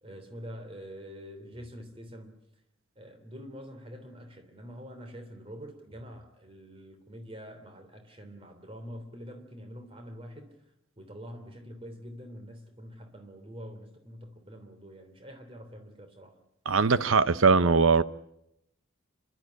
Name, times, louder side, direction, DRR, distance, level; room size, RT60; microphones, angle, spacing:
voice 1, 0.0-2.3 2.9-10.5 11.0-16.4, equal, 25° right, 6 dB, 3.2 m, -45 dB
voice 2, 16.7-18.0, right 4 dB, 75° right, 15 dB, 0.8 m, -21 dB
27.0 x 13.0 x 9.7 m, 0.81 s
head